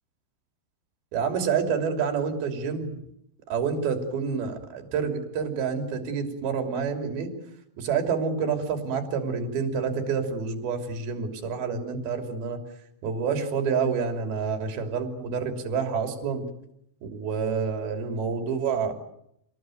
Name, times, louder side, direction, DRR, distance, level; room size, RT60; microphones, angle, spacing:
voice 1, 1.1-2.9 3.5-7.3 7.8-12.6 13.0-16.4 17.1-18.9, right 6 dB, 55° right, 5 dB, 4.8 m, -28 dB
28.5 x 19.5 x 9.2 m, 0.77 s
omnidirectional pair, 5.6 m